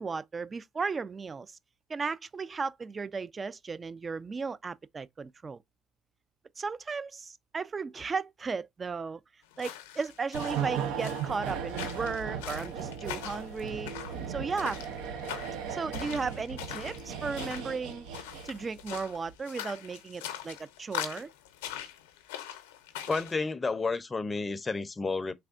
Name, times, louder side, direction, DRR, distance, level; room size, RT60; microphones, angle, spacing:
voice 1, 0.0-1.6 1.9-5.6 6.6-9.2 9.6-14.0 14.3-14.8 15.7-18.1 18.4-21.3, right 4 dB, 35° right, 0.4 m, -35 dB
sound 1, 9.5-23.4, left 12 dB, 90° left, 0.6 m, -42 dB
sound 2, 10.3-18.9 19.1-19.3, right 7 dB, 80° right, 0.6 m, -37 dB
voice 2, 23.1-25.3, left 4 dB, 30° left, 0.5 m, -31 dB
3.4 x 3.3 x 2.5 m
hypercardioid pair, 65°, 0 cm